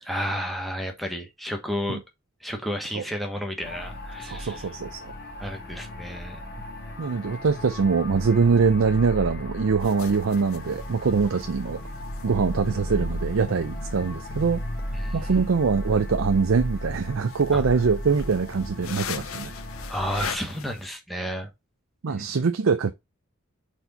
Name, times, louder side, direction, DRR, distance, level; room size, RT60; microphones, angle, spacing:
voice 1, 0.0-2.0 2.4-4.7 5.4-6.4 14.9-15.3 17.5-17.6 19.9-21.5 22.1-22.3, equal, ahead, 1.2 m, -32 dB
sound 1, 3.6-20.3, equal, 50° left, 1.7 m, -35 dB
voice 2, 4.2-5.1 7.0-11.8 12.2-14.6 15.1-19.5 22.0-22.9, right 5 dB, 75° right, 0.5 m, -23 dB
sound 2, 9.8-20.9, left 7 dB, 80° left, 0.6 m, -42 dB
4.3 x 4.2 x 5.5 m
head